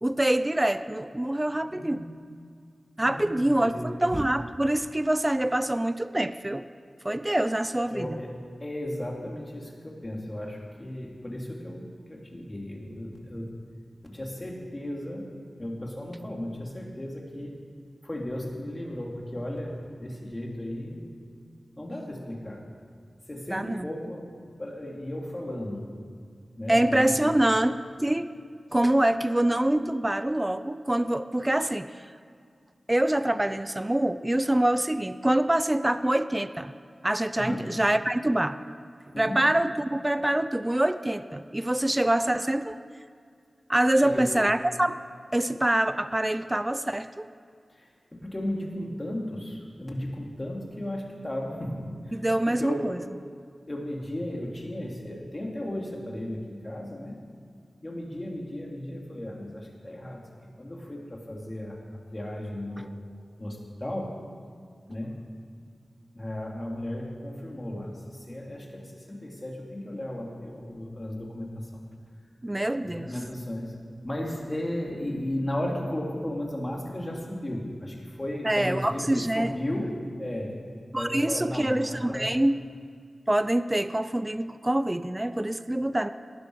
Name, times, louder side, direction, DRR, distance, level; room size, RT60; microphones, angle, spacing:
voice 1, 0.0-2.1 3.0-3.7 4.0-6.7 7.0-8.2 23.5-23.9 26.7-28.3 28.7-31.9 32.9-36.7 37.0-38.6 39.2-42.8 43.7-45.0 45.3-47.3 52.1-53.0 72.4-73.1 78.4-79.5 80.9-82.6 83.3-86.1, right 1 dB, 20° right, 12 dB, 0.5 m, -25 dB
voice 2, 1.7-2.1 3.0-4.1 7.9-8.3 8.6-13.5 14.0-15.3 15.6-17.5 18.0-21.1 21.8-22.6 23.3-24.3 24.6-25.9 26.6-27.3 37.4-37.7 39.1-39.4 44.0-44.3 47.7-52.9 53.7-57.2 57.8-60.2 60.6-61.8 62.1-62.9 63.4-64.1 64.9-65.1 66.1-71.8 72.8-73.8 74.0-79.9 80.2-80.5 80.9-82.3, left 1 dB, 30° left, -1 dB, 3.1 m, -35 dB
18.0 x 12.0 x 4.9 m, 2.2 s
cardioid pair, 50°, 0 cm